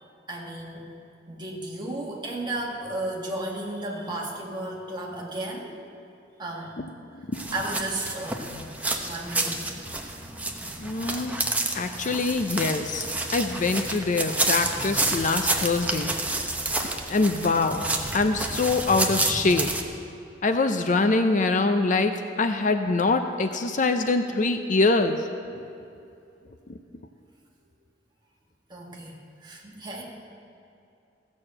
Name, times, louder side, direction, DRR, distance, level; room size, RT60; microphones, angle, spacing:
voice 1, 0.3-0.9 1.3-5.8 6.4-6.7 7.5-8.6 9.0-9.6 28.7-30.0, right 2 dB, 25° right, -2 dB, 1.9 m, -34 dB
sound 1, 7.3-19.8, right 2 dB, 10° right, 0.8 m, -29 dB
voice 2, 10.8-11.3 11.7-13.0 13.3-16.1 17.1-17.8 18.1-19.7 20.4-25.2, left 3 dB, 45° left, 7 dB, 0.6 m, -24 dB
15.5 x 6.3 x 7.6 m, 2.6 s
head